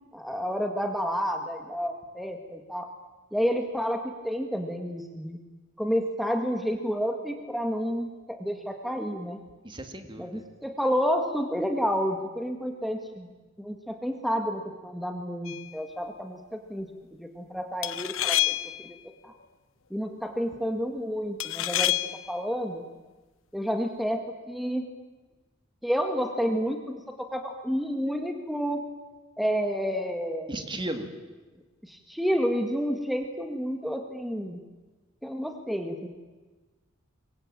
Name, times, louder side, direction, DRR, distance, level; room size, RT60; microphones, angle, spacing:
voice 1, 0.1-2.9 3.3-5.4 5.8-9.4 10.2-13.3 13.6-16.9 17.2-18.6 18.8-19.0 19.2-19.3 19.9-21.9 22.3-22.8 23.5-24.9 25.8-28.8 29.4-30.6 31.8-34.6 35.2-36.1, equal, ahead, 4 dB, 1.8 m, -30 dB
voice 2, 9.6-10.4 30.5-31.1, right 1 dB, 25° right, 7 dB, 2.4 m, -35 dB
sound 1, 15.4-15.8 17.8-18.9 21.4-22.3, left 14 dB, 85° left, 0.9 m, -28 dB
26.0 x 23.5 x 8.9 m, 1.2 s
head